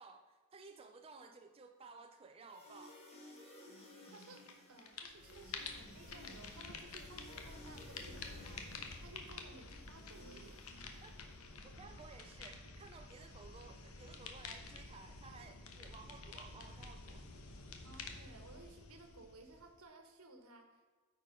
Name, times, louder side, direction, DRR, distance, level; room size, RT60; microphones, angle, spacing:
voice 1, 0.0-3.0 10.9-11.1 11.8-17.2, right 4 dB, 25° right, 4 dB, 0.4 m, -56 dB
sound 1, 2.5-11.6, left 1 dB, 30° left, 1.7 m, -58 dB
sound 2, 4.1-4.5 4.8-19.8, left 4 dB, 75° left, 1.0 m, -50 dB
voice 2, 4.1-10.6 17.8-20.9, right 2 dB, 70° right, 6 dB, 1.2 m, -58 dB
9.1 x 4.8 x 5.1 m, 1.5 s
head